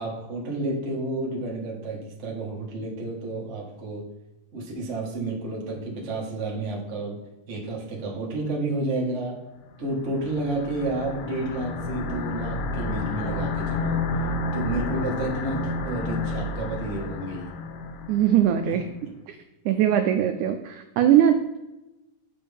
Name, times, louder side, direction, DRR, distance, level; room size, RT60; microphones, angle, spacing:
voice 1, 0.0-4.1 4.5-7.2 7.5-9.4 9.8-14.0 14.5-17.5, right 2 dB, 70° right, -3 dB, 0.6 m, -30 dB
sound 1, 9.9-18.5, left 3 dB, 80° left, 1.9 m, -30 dB
voice 2, 18.1-18.9 19.3-19.4 19.7-21.6, right 10 dB, 85° right, 7 dB, 1.7 m, -21 dB
7.2 x 5.1 x 3.4 m, 1.0 s
omnidirectional pair, 3.9 m